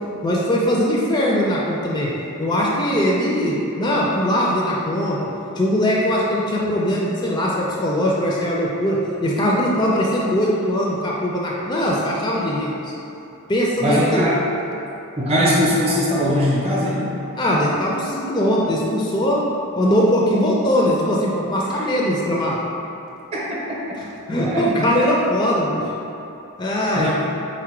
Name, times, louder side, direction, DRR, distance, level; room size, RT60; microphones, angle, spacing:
voice 1, 0.2-2.1 2.4-5.3 5.6-12.9 13.5-14.3 17.4-19.4 19.7-22.6 24.3-25.8 26.6-27.1, equal, 20° left, -4 dB, 0.4 m, -20 dB
voice 2, 13.8-14.4 15.2-17.1 21.7-21.9 23.3-23.4 23.7-23.8 24.4-24.7 26.9-27.1, equal, 30° right, -6 dB, 0.8 m, -20 dB
4.6 x 2.1 x 4.4 m, 3.0 s
head